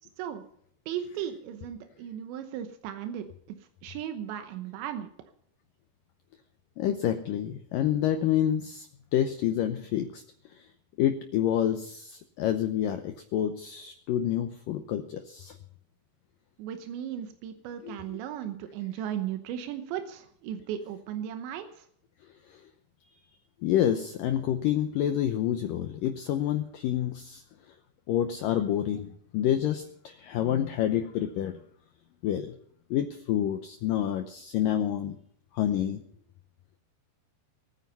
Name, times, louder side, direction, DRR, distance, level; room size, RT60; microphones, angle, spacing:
voice 1, 0.9-3.3 3.8-5.1 16.6-21.9, right 10 dB, 90° right, 7 dB, 3.3 m, -36 dB
voice 2, 6.8-8.9 9.1-10.2 10.5-10.6 11.0-15.6 17.8-18.2 22.5-22.6 23.1-23.2 23.6-27.4 28.1-31.6 32.2-32.5 32.9-35.2 35.5-36.0, left 10 dB, 80° left, 7 dB, 2.0 m, -28 dB
21.0 x 9.5 x 5.6 m, 0.64 s
omnidirectional pair, 5.0 m